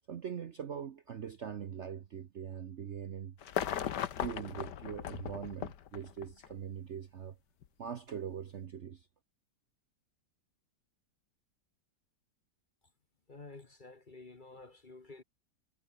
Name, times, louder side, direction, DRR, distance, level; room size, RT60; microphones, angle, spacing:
voice 1, 0.1-3.3 4.2-7.4 7.8-9.1, right 8 dB, 50° right, 0.9 m, -42 dB
sound 1, 3.4-6.5 7.6-7.7, left 9 dB, 70° left, 1.7 m, -37 dB
voice 2, 13.3-15.2, left 3 dB, 30° left, 1.4 m, -51 dB
omnidirectional pair, 1.9 m